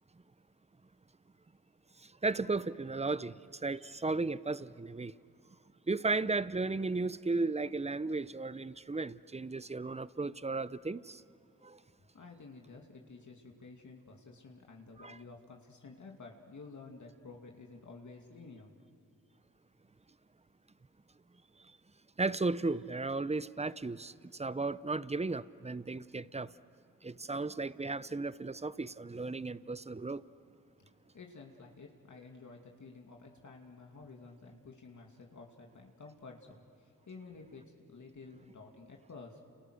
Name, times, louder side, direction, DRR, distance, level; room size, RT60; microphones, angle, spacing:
voice 1, 2.2-3.3 3.6-5.1 5.9-11.2 11.6-11.8 15.0-15.2 22.2-26.5 27.0-30.2, right 3 dB, 20° right, 0.7 m, -35 dB
voice 2, 12.1-18.7 19.1-19.2 30.8-30.9 31.1-39.4, left 3 dB, 55° left, 2.6 m, -52 dB
30.0 x 29.5 x 6.5 m
cardioid pair, 55°, 34 cm